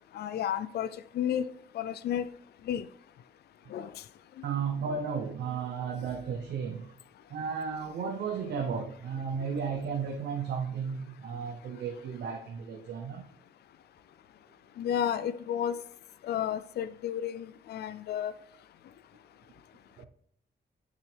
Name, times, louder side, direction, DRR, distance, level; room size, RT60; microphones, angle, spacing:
voice 1, 0.1-0.9 1.1-1.5 1.7-2.2 2.7-2.9 3.7-3.9 14.8-15.7 16.2-18.3, left 9 dB, 70° left, 0.4 m, -31 dB
voice 2, 4.4-6.9 7.3-13.3 20.0-20.1, right 6 dB, 85° right, 0.9 m, -34 dB
9.1 x 6.5 x 3.4 m
cardioid pair, 115°, 17 cm